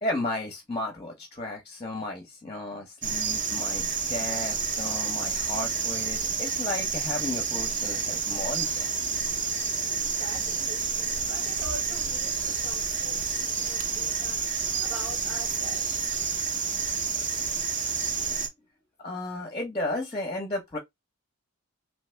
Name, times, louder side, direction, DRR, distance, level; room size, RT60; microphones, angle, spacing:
voice 1, 0.0-8.9 19.0-20.8, left 2 dB, 25° left, 0.8 m, -34 dB
sound 1, 3.0-18.5, right 5 dB, 35° right, 0.8 m, -29 dB
voice 2, 9.9-16.1, right 2 dB, 75° right, 1.4 m, -44 dB
2.8 x 2.7 x 3.3 m
head